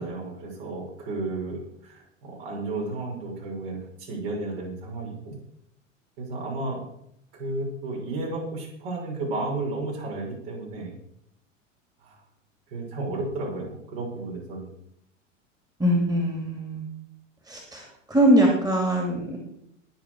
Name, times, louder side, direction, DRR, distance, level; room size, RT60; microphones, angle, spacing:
voice 1, 0.0-5.4 6.2-6.9 7.3-10.9 12.0-12.2 12.7-14.7, right 2 dB, 50° right, -2 dB, 6.2 m, -33 dB
voice 2, 15.8-16.8 17.5-17.8 18.1-19.4, right 1 dB, 10° right, 1 dB, 3.2 m, -22 dB
21.0 x 7.0 x 4.9 m, 0.73 s
figure-of-eight pair, 90°, 39 cm